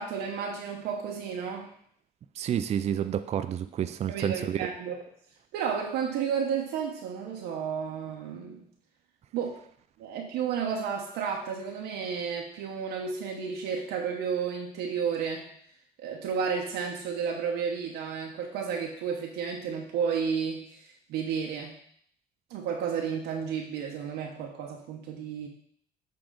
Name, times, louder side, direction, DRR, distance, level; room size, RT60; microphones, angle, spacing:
voice 1, 0.0-1.7 4.1-5.0 5.5-8.7 9.3-9.6 10.0-15.5 16.0-21.8 22.5-25.5, right 6 dB, 90° right, 0 dB, 0.9 m, -32 dB
voice 2, 2.4-4.7, right 9 dB, 40° right, 10 dB, 0.4 m, -29 dB
7.0 x 3.8 x 3.8 m, 0.63 s
cardioid pair, 110°, 17 cm